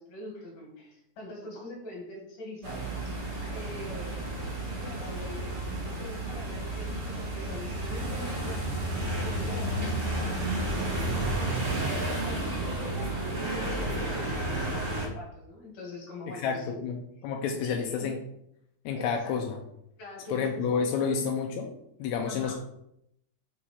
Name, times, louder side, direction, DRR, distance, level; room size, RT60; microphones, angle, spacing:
voice 1, 0.0-2.9 3.5-4.2 4.8-5.5 6.0-8.7 9.2-11.3 12.1-16.8 17.6-18.1 19.0-19.4 20.0-21.1 22.3-22.5, left 2 dB, 55° left, -1 dB, 2.8 m, -43 dB
sound 1, 2.6-15.1, right 1 dB, 50° right, 2.3 m, -32 dB
voice 2, 16.3-17.0 17.2-18.2 18.8-19.6 20.3-21.7 22.0-22.5, left 6 dB, 80° left, 2 dB, 1.7 m, -29 dB
5.8 x 4.7 x 4.2 m, 0.78 s
omnidirectional pair, 3.6 m